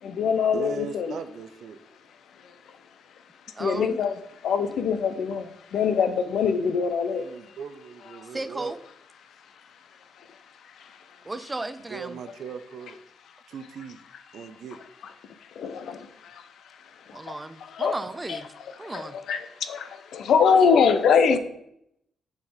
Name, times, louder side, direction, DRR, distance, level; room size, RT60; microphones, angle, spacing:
voice 1, 0.0-1.2 2.4-2.6 3.6-7.2 8.2-8.3 10.2-10.4 10.6-11.0 14.3-14.5 15.5-16.5 17.1-17.4 17.6-17.9 18.3-18.4 18.8-21.4, left 6 dB, 75° left, 9 dB, 0.7 m, -24 dB
voice 2, 0.5-1.8 7.1-8.7 11.9-13.0 13.5-14.0 14.3-14.8, right 6 dB, 70° right, 10 dB, 0.6 m, -39 dB
voice 3, 3.5-4.0 8.3-8.8 11.2-12.2 17.1-18.5 18.8-19.2, right 2 dB, 25° right, 13 dB, 0.6 m, -34 dB
7.2 x 3.9 x 5.1 m, 0.76 s
supercardioid pair, 60°, 0 cm